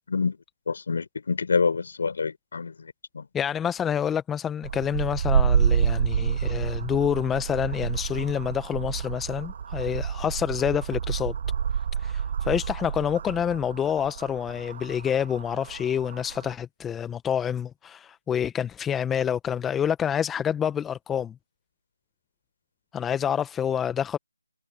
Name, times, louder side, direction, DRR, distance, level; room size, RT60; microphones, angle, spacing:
voice 1, 0.7-3.3, left 5 dB, 50° left, 4.2 m, -27 dB
voice 2, 3.3-11.3 12.0-21.3 22.9-24.2, left 8 dB, 5° left, 0.8 m, -27 dB
sound 1, 4.6-16.5, right 7 dB, 35° right, 1.8 m, -28 dB
figure-of-eight pair, 160°, 0 cm